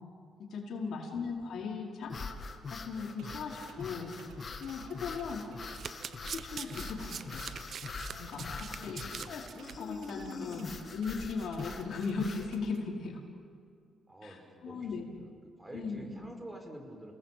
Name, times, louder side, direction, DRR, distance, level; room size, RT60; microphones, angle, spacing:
voice 1, 0.4-2.2 2.7-4.1 4.6-5.4 6.2-7.4 8.2-13.2 14.2-15.0 15.7-16.1, left 4 dB, 65° left, -1 dB, 5.0 m, -38 dB
sound 1, 2.0-12.5, left 4 dB, 40° left, 2.3 m, -43 dB
sound 2, 3.2-12.8, right 6 dB, 85° right, 1.9 m, -54 dB
Domestic sounds home sounds, 5.6-9.7 10.1-10.3 10.5-10.6, right 7 dB, 55° right, 1.0 m, -43 dB
voice 2, 8.5-9.2 14.1-17.1, right 1 dB, 15° right, 3 dB, 5.1 m, -49 dB
29.0 x 19.5 x 7.8 m, 2.4 s
cardioid pair, 90°, 0 cm